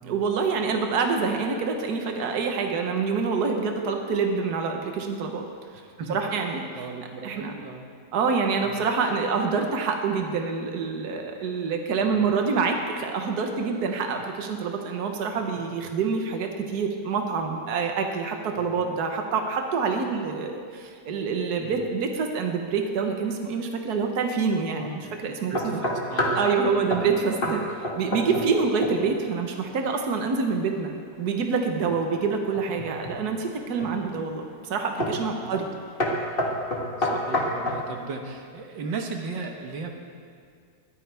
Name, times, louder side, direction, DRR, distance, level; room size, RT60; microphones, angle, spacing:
voice 1, 0.0-5.5 6.1-6.6 7.2-7.5 8.1-25.5 26.3-30.9 31.2-35.7, right 5 dB, 60° right, 3 dB, 1.6 m, -26 dB
voice 2, 6.8-7.9 8.6-8.9 12.0-12.3 15.6-15.7 18.6-18.8 21.6-21.9 24.8-27.3 28.3-28.5 31.9-32.2 35.4-35.7 37.0-39.9, right 4 dB, 80° right, 3 dB, 1.9 m, -37 dB
sound 1, 25.5-26.5 26.9-27.1 27.4-27.6 27.8-28.5 28.8-29.2 32.5-33.2 33.8-34.2 35.0-35.2 35.5-35.7 36.0-37.8, left 1 dB, 30° left, 1.9 m, -27 dB
21.5 x 14.0 x 3.5 m, 2.2 s
omnidirectional pair, 1.9 m